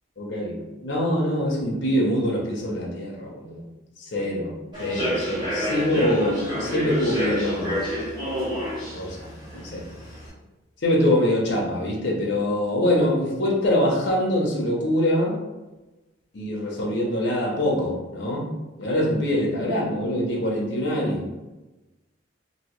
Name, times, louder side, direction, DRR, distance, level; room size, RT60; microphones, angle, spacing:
voice 1, 0.2-3.6 4.0-4.5 4.8-7.9 8.9-9.3 9.5-9.8 10.8-15.4 16.3-18.5 18.8-21.3, left 1 dB, 70° left, -3 dB, 0.7 m, -24 dB
Human voice / Subway metro underground, 4.7-10.3, equal, 25° right, 1.2 m, -28 dB
2.8 x 2.7 x 3.0 m, 1.1 s
head